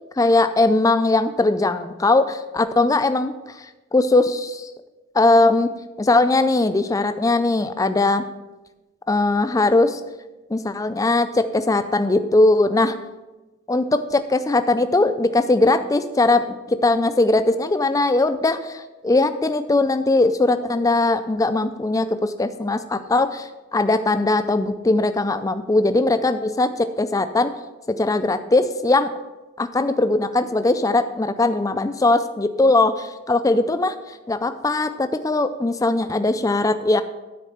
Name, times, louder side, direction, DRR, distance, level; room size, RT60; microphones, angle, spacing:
voice 1, 0.2-3.7 3.9-4.7 5.1-5.7 6.0-8.2 9.1-10.0 10.5-12.9 13.7-27.5 27.9-29.1 29.6-37.0, left 2 dB, 15° left, 10 dB, 0.3 m, -20 dB
9.7 x 4.3 x 6.6 m, 1.1 s
head